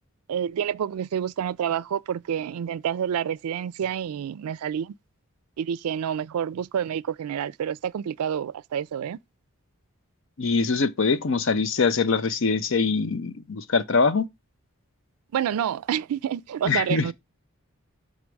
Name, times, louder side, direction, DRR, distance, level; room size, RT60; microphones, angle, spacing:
voice 1, 0.3-4.9 5.6-9.2 15.3-17.1, right 8 dB, 90° right, 0.3 m, -28 dB
voice 2, 10.4-14.3 16.7-17.1, left 4 dB, 60° left, 0.6 m, -23 dB
6.3 x 3.9 x 4.6 m
head